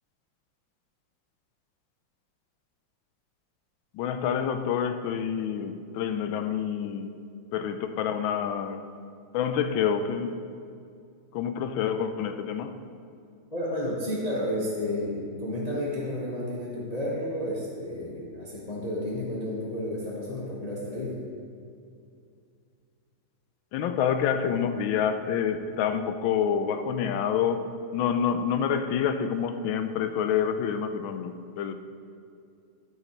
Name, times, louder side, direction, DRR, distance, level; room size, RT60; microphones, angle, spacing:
voice 1, 3.9-7.2 7.5-8.8 9.3-10.4 11.3-12.8 23.7-31.7, left 7 dB, 90° left, 9 dB, 1.4 m, -27 dB
voice 2, 13.5-21.2, left 1 dB, 25° left, -6 dB, 1.0 m, -31 dB
14.0 x 6.4 x 3.1 m, 2.4 s
omnidirectional pair, 2.1 m